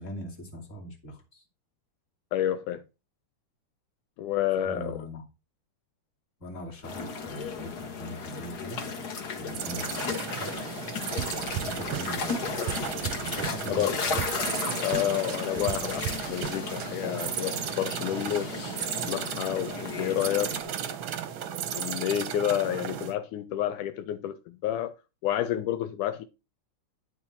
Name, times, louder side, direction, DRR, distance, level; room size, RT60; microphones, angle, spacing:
voice 1, 0.0-1.4 4.6-5.2 6.4-8.8 9.4-10.6 11.6-14.2, equal, 25° left, 2.6 m, -41 dB
voice 2, 2.3-2.8 4.2-5.0 13.8-14.0 14.8-18.5 19.0-20.8 21.7-24.9 25.2-26.3, left 11 dB, 80° left, 2.2 m, -29 dB
sound 1, 6.8-20.6, left 5 dB, 40° left, 1.5 m, -35 dB
sound 2, 9.5-23.1, right 8 dB, 60° right, 1.3 m, -35 dB
sound 3, 11.2-12.4 12.7-13.9 14.2-14.6 14.9-16.9, right 12 dB, 75° right, 1.6 m, -36 dB
12.0 x 4.4 x 6.1 m
omnidirectional pair, 3.7 m